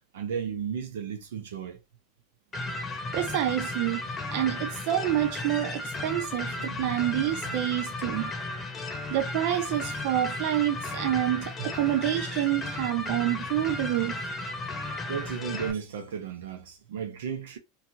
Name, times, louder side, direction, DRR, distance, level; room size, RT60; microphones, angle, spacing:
voice 1, 0.1-1.8 6.6-7.6 11.6-11.7 15.1-17.6, right 7 dB, 85° right, 0.8 m, -35 dB
sound 1, 2.5-15.7, left 2 dB, 25° left, 0.8 m, -34 dB
voice 2, 3.1-8.3 9.1-14.2, right 13 dB, 65° right, 0.3 m, -28 dB
2.8 x 2.5 x 2.7 m
supercardioid pair, 115°, 0 cm